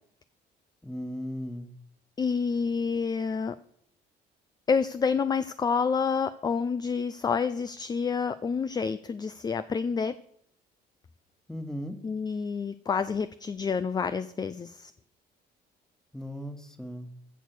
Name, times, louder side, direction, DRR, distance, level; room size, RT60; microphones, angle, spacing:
voice 1, 0.8-1.7 11.5-12.0 16.1-17.1, equal, 5° left, 8 dB, 1.6 m, -37 dB
voice 2, 2.2-3.6 4.7-10.1 12.0-14.9, left 5 dB, 25° left, 13 dB, 0.5 m, -28 dB
15.0 x 6.6 x 6.2 m, 0.69 s
cardioid pair, 110°, 17 cm